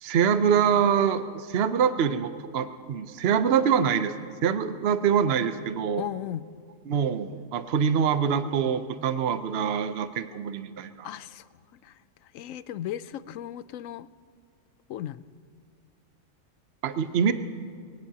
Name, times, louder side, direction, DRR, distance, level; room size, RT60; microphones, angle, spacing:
voice 1, 0.0-4.1 4.4-6.0 6.9-11.1 16.8-17.3, right 7 dB, 55° right, 10 dB, 0.9 m, -25 dB
voice 2, 6.0-6.5 11.0-11.5 11.8-12.0 12.3-14.1 14.9-15.3, left 11 dB, 90° left, 15 dB, 1.0 m, -36 dB
23.0 x 18.0 x 2.9 m, 2.3 s
omnidirectional pair, 1.3 m